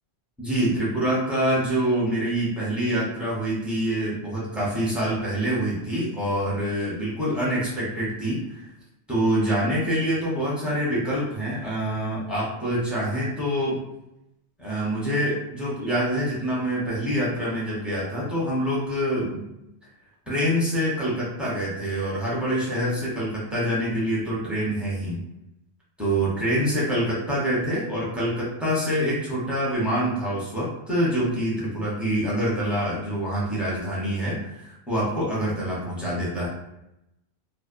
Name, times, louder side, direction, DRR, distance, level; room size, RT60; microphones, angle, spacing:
voice 1, 0.4-8.6 9.1-13.8 14.6-19.5 20.3-25.2 26.0-36.5, equal, ahead, -7 dB, 0.6 m, -26 dB
2.5 x 2.2 x 2.4 m, 0.86 s
omnidirectional pair, 1.2 m